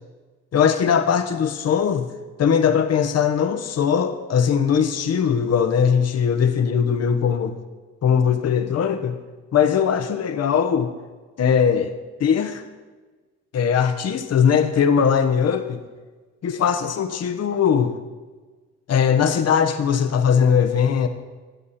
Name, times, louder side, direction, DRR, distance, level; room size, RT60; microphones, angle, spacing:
voice 1, 0.5-2.1 2.4-7.6 8.0-9.2 9.5-10.9 11.4-11.9 12.2-12.6 13.5-15.8 16.4-17.9 18.9-21.1, left 7 dB, 55° left, 8 dB, 1.2 m, -20 dB
22.5 x 8.3 x 4.3 m, 1.3 s
cardioid pair, 90°, 30 cm